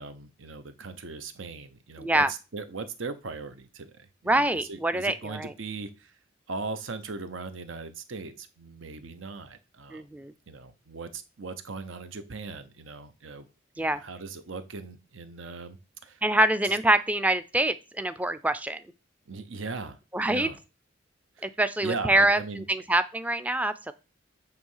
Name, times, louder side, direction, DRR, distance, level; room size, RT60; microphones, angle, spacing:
voice 1, 0.0-6.1 6.5-10.0 10.5-13.5 13.8-16.2 16.6-16.8 19.3-20.0 20.3-20.6 21.4-21.5 21.8-22.7, right 4 dB, 80° right, 11 dB, 0.8 m, -39 dB
voice 2, 2.0-2.3 4.3-5.5 9.9-10.3 13.8-14.0 16.2-18.8 20.1-20.5 21.4-23.9, right 1 dB, 5° right, 12 dB, 0.4 m, -25 dB
9.2 x 3.2 x 5.5 m, 0.30 s
head